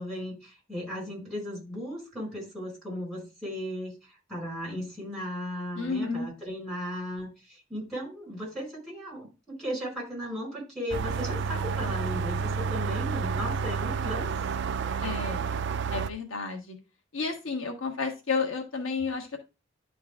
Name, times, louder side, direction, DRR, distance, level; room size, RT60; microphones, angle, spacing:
voice 1, 0.0-14.3, equal, 5° left, -3 dB, 4.7 m, -36 dB
voice 2, 5.8-6.3 15.0-15.4 15.9-16.8 17.1-19.4, left 4 dB, 80° left, 3 dB, 1.3 m, -31 dB
sound 1, 10.9-16.1, right 5 dB, 60° right, 0.4 m, -30 dB
11.0 x 3.9 x 3.6 m, 0.29 s
head